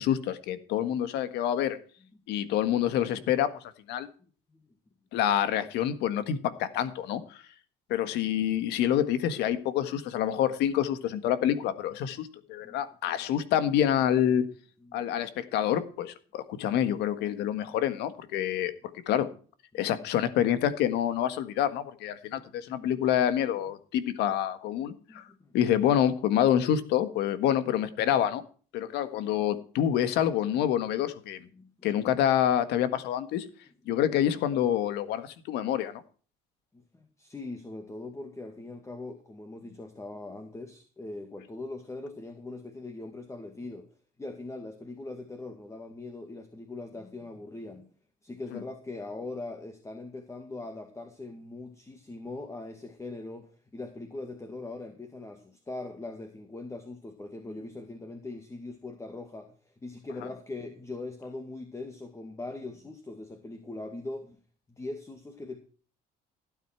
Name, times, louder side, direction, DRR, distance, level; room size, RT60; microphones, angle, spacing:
voice 1, 0.0-1.8 2.3-3.5 3.9-4.1 5.1-7.4 7.9-14.4 14.9-18.7 19.1-19.3 19.7-25.2 25.5-28.4 28.7-31.4 31.8-33.4 33.8-36.0 48.5-48.6, left 10 dB, 85° left, 12 dB, 1.6 m, -27 dB
voice 2, 22.3-23.0 25.1-25.5 31.5-31.7 36.7-43.9 44.2-47.9 48.2-64.4 64.7-65.6, left 2 dB, 15° left, 6 dB, 2.2 m, -41 dB
16.0 x 9.1 x 4.6 m, 0.41 s
cardioid pair, 110°, 17 cm